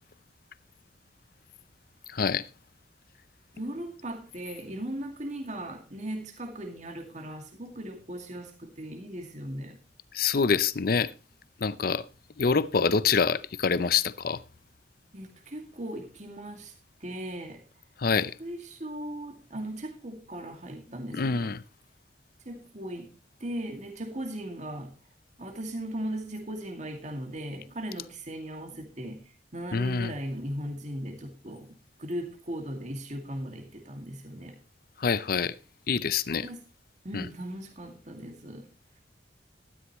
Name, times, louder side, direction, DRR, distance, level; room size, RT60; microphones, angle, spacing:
voice 1, 2.1-2.5 10.1-11.1 11.6-12.0 12.4-14.4 18.0-18.4 21.1-21.6 29.7-30.1 35.0-35.5 35.9-36.5 37.1-37.3, left 5 dB, 55° left, 0.6 m, -26 dB
voice 2, 3.5-9.8 15.1-16.7 17.0-17.6 18.4-21.5 22.5-23.1 23.4-24.9 25.4-29.2 29.5-34.6 36.4-36.6 37.0-38.7, right 1 dB, 40° right, 2.2 m, -38 dB
13.0 x 12.5 x 3.1 m
head